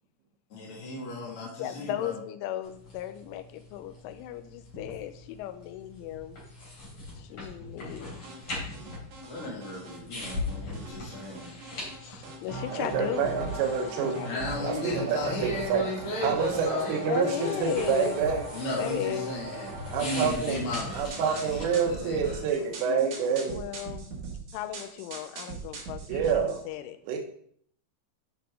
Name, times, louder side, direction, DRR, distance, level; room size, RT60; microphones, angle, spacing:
voice 1, 0.5-2.2 9.3-11.5 14.2-17.7 18.5-19.7 20.0-22.6, left 1 dB, 65° left, -3 dB, 1.3 m, -35 dB
voice 2, 1.2-6.4 7.2-8.4 10.9-11.1 12.0-13.5 13.8-15.5 17.1-18.2 18.8-19.4 23.5-24.1 24.5-27.0, left 12 dB, 85° left, 9 dB, 3.1 m, -36 dB
sound 1, 2.6-22.4, left 2 dB, 30° left, 3.6 m, -42 dB
sound 2, 8.2-10.0 10.2-12.0 12.2-26.6, right 3 dB, 55° right, 2.2 m, -40 dB
voice 3, 12.7-14.2 14.6-15.9 16.2-18.4 19.9-20.6 20.9-23.6 26.1-26.6 27.1-27.2, right 6 dB, 85° right, 3 dB, 3.5 m, -28 dB
10.5 x 5.9 x 3.6 m, 0.63 s
omnidirectional pair, 5.6 m